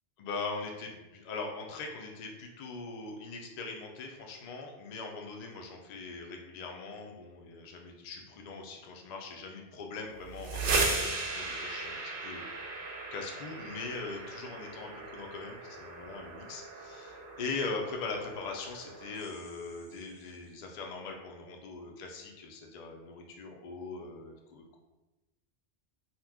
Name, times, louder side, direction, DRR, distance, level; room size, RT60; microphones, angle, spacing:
voice 1, 0.2-24.8, left 3 dB, 55° left, 2 dB, 0.4 m, -41 dB
sound 1, 10.2-20.0, right 3 dB, 60° right, 0.7 m, -37 dB
2.8 x 2.2 x 3.4 m, 1.1 s
omnidirectional pair, 1.1 m